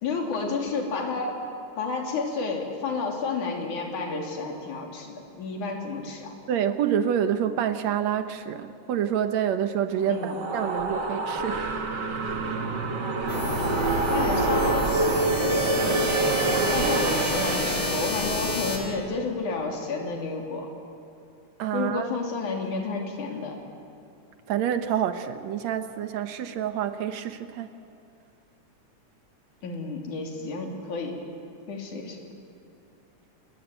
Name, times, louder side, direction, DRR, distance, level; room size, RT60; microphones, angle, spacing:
voice 1, 0.0-1.4 1.8-6.3 10.1-10.4 14.1-16.0 16.7-20.7 21.7-23.6 29.6-31.2 31.7-32.2, left 4 dB, 85° left, 2 dB, 4.6 m, -31 dB
voice 2, 6.5-11.7 16.5-16.7 21.6-22.1 24.5-27.7, right 9 dB, 70° right, 9 dB, 2.3 m, -27 dB
sound 1, 10.0-18.3, right 3 dB, 40° right, 2.1 m, -27 dB
sound 2, 13.3-18.8, left 2 dB, 55° left, 4.4 m, -29 dB
27.5 x 22.5 x 9.1 m, 2.5 s
omnidirectional pair, 3.4 m